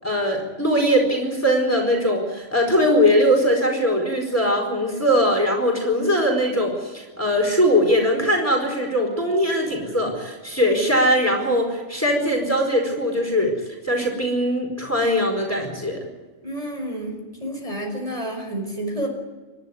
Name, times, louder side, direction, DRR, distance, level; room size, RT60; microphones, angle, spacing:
voice 1, 0.0-13.5 13.8-16.1, equal, 10° left, 1 dB, 4.7 m, -21 dB
voice 2, 16.4-19.1, right 1 dB, 30° right, 2 dB, 5.1 m, -30 dB
28.5 x 12.0 x 9.6 m, 1.3 s
omnidirectional pair, 1.2 m